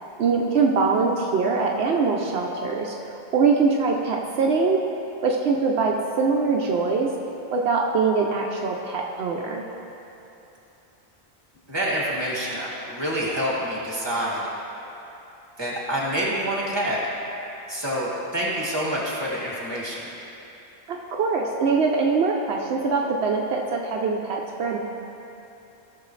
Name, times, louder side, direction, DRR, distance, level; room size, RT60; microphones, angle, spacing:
voice 1, 0.2-2.9 3.3-4.8 5.2-7.1 7.5-9.6 20.9-24.8, right 4 dB, 80° right, 0 dB, 0.9 m, -23 dB
voice 2, 11.7-14.4 15.6-17.0 17.7-20.1, equal, 25° right, -6 dB, 2.2 m, -27 dB
16.5 x 6.7 x 3.2 m, 3.0 s
omnidirectional pair, 1.1 m